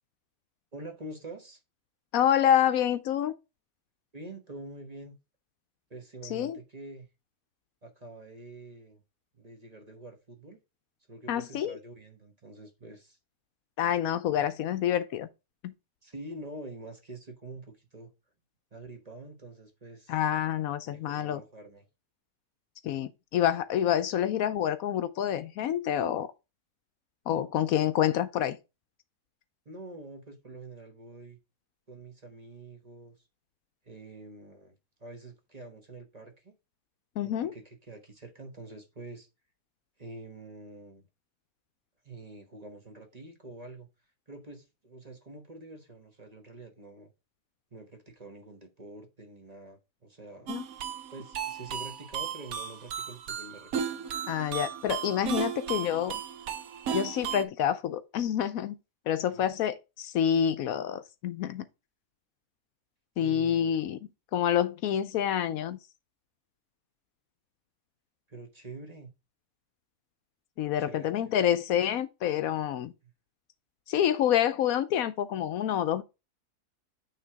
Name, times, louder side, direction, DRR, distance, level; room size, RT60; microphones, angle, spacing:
voice 1, 0.7-1.6 4.1-5.1 5.9-7.1 7.8-9.0 9.3-10.6 11.1-13.2 14.3-14.5 16.0-18.1 18.7-20.2 20.9-21.9 29.6-31.4 31.9-33.2 33.8-36.5 37.2-39.3 40.0-41.0 42.0-43.9 44.3-47.1 47.7-50.5 51.1-53.9 59.3-59.5 63.2-63.8 68.3-69.1 70.8-71.3, right 2 dB, 30° right, 1.2 m, -46 dB
voice 2, 2.1-3.3 6.2-6.6 11.3-11.8 13.8-15.3 15.6-15.7 20.1-21.4 22.8-26.3 27.3-28.6 37.2-37.5 50.5-50.6 54.3-56.2 56.9-58.8 59.1-61.6 63.2-64.0 64.3-65.8 70.6-72.9 73.9-76.0, left 10 dB, 75° left, 1.0 m, -27 dB
sound 1, 50.5-57.4, right 8 dB, 70° right, 1.2 m, -35 dB
8.8 x 3.3 x 4.6 m
omnidirectional pair, 1.6 m